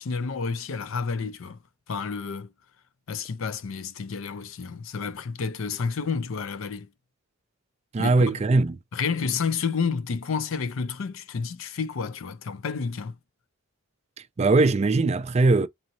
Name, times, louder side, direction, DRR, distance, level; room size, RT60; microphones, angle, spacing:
voice 1, 0.0-1.6 1.9-2.5 3.1-6.9 8.0-8.4 8.9-13.2, left 5 dB, 65° left, 0.5 m, -30 dB
voice 2, 7.9-8.7 14.4-15.7, right 3 dB, 30° right, 0.3 m, -20 dB
4.1 x 2.7 x 2.8 m
head